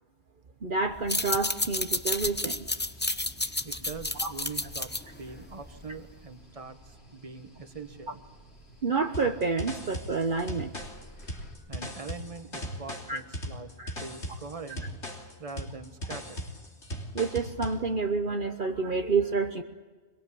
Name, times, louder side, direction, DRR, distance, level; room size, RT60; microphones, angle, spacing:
voice 1, 0.6-2.7 4.2-4.3 8.8-10.7 13.1-13.2 13.8-13.9 17.1-19.6, right 4 dB, 50° right, 4 dB, 1.2 m, -28 dB
sound 1, 1.0-6.1, left 2 dB, 10° left, 0.7 m, -31 dB
sound 2, 2.0-11.5, right 1 dB, 65° left, 4.0 m, -53 dB
voice 2, 3.6-8.2 11.7-13.7 14.0-14.9 15.4-16.4, right 4 dB, 30° right, 8 dB, 1.5 m, -42 dB
sound 3, 9.1-17.8, equal, 85° left, 3.7 m, -38 dB
23.5 x 23.0 x 8.6 m, 1.4 s
omnidirectional pair, 1.1 m